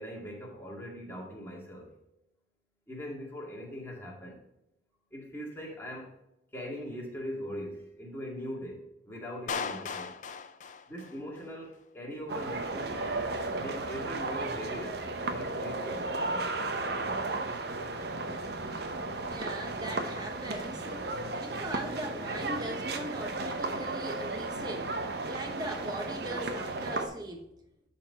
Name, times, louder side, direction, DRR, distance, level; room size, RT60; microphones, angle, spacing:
voice 1, 0.0-2.0 2.9-4.4 5.1-6.1 6.5-10.1 10.9-13.0 13.5-16.1, equal, 15° left, 2.0 m, -41 dB
Clapping, 9.5-11.5, left 6 dB, 45° left, 0.5 m, -37 dB
sound 1, 12.3-27.1, right 2 dB, 60° right, 0.8 m, -34 dB
voice 2, 19.3-27.5, right 1 dB, 25° right, 0.9 m, -40 dB
11.5 x 4.1 x 4.1 m
head